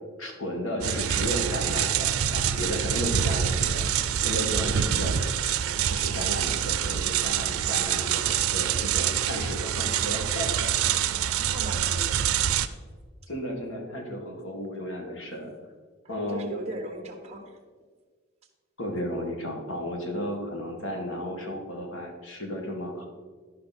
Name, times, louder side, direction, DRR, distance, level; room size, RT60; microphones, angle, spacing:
voice 1, 0.2-3.9 4.2-5.2 5.9-11.0 13.3-15.5 16.1-16.4 18.8-23.1, equal, 65° left, 1 dB, 1.8 m, -34 dB
sound 1, 0.8-12.7, right 9 dB, 90° right, 0.5 m, -26 dB
voice 2, 11.5-12.2 16.0-17.6, right 1 dB, 30° right, 3 dB, 1.3 m, -39 dB
12.5 x 5.4 x 4.1 m, 1.5 s
head